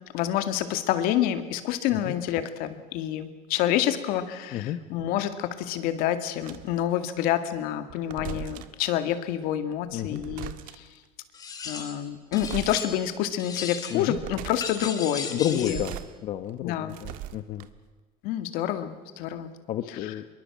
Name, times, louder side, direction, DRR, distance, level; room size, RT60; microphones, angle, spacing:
voice 1, 0.1-10.9 11.7-15.8 16.6-17.0 18.2-19.5 19.9-20.1, left 11 dB, 75° left, 9 dB, 2.2 m, -28 dB
sound 1, 6.4-6.8 7.9-8.8 9.9-11.0 12.3-12.8 13.3-13.4 14.0-14.9 15.5-16.1 16.5-17.9, right 13 dB, 65° right, 1.5 m, -39 dB
voice 2, 9.9-10.2 13.9-14.2 15.3-17.7 19.7-20.3, left 11 dB, 45° left, 9 dB, 1.0 m, -31 dB
sound 2, 11.3-12.0 12.3-13.1 13.4-14.1 14.6-15.9, left 5 dB, 25° left, 2.7 m, -36 dB
25.5 x 23.0 x 7.4 m, 1.4 s
cardioid pair, 165°, 15 cm